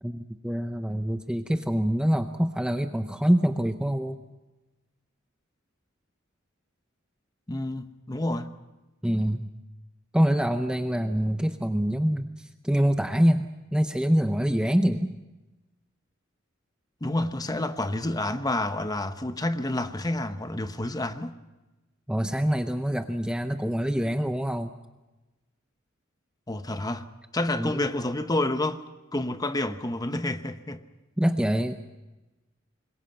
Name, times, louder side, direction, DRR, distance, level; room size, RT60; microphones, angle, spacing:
voice 1, 0.0-4.2 9.0-9.5 10.1-15.1 22.1-24.7 27.6-27.8 31.2-31.8, equal, 5° right, 0.7 m, -25 dB
voice 2, 7.5-8.5 17.0-21.3 26.5-27.1 27.3-28.8 29.1-30.8, left 1 dB, 20° left, 1.0 m, -29 dB
26.0 x 21.5 x 5.7 m
head